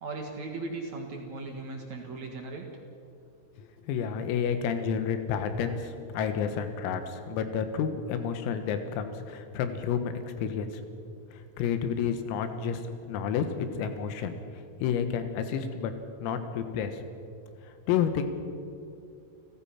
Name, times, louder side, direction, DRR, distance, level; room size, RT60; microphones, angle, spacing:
voice 1, 0.0-2.7, right 3 dB, 65° right, 2 dB, 1.8 m, -37 dB
voice 2, 3.6-10.8 11.3-12.8 13.1-15.9 16.2-17.0 17.9-18.3, left 7 dB, 85° left, 8 dB, 4.1 m, -30 dB
29.5 x 16.0 x 5.8 m, 2.5 s
omnidirectional pair, 6.0 m